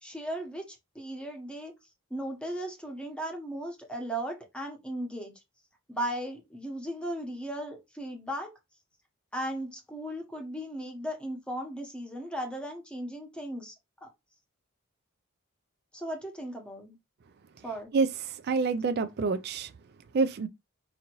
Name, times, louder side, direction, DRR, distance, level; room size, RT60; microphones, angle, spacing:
voice 1, 0.0-1.7 2.1-5.3 5.9-8.5 9.3-13.7 14.0-14.1 15.9-17.0 17.6-17.9, right 1 dB, 5° left, 0.8 m, -36 dB
voice 2, 17.9-19.7 20.1-20.5, right 4 dB, 45° right, 0.3 m, -27 dB
4.9 x 2.6 x 2.9 m
head